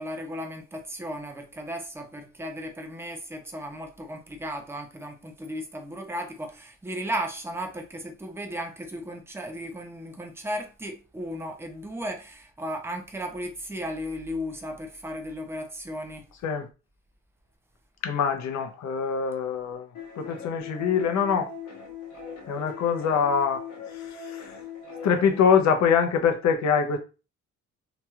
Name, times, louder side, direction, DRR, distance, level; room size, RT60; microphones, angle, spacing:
voice 1, 0.0-16.3, equal, 10° right, 0.6 m, -35 dB
voice 2, 18.0-19.9 20.2-21.5 22.5-23.6 23.9-24.5 25.0-27.0, left 6 dB, 65° left, 0.7 m, -24 dB
sound 1, 19.9-25.4, left 6 dB, 80° left, 1.1 m, -40 dB
3.0 x 2.8 x 2.3 m
cardioid pair, 90°, 30 cm